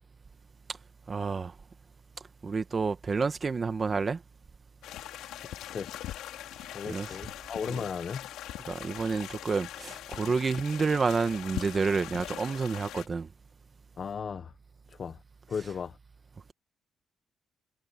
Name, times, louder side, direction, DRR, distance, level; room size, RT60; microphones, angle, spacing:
voice 1, 1.1-1.5 2.4-4.2 6.9-7.1 8.7-13.3, right 4 dB, 35° right, 1.4 m, -29 dB
sound 1, 4.8-13.1, left 13 dB, 90° left, 4.6 m, -41 dB
voice 2, 5.6-6.0 6.7-8.3 14.0-14.5 14.9-15.2 15.5-16.0, left 6 dB, 45° left, 1.2 m, -36 dB
cardioid pair, 90°, 0 cm